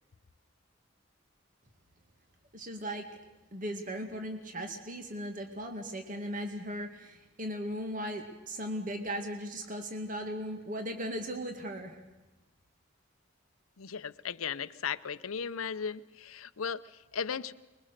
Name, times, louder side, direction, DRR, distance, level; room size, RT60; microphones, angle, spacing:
voice 1, 2.5-3.1 3.5-12.0, equal, 40° right, 5 dB, 2.2 m, -37 dB
voice 2, 13.8-17.5, left 6 dB, 85° left, 14 dB, 0.7 m, -36 dB
24.5 x 22.5 x 6.7 m, 1.1 s
head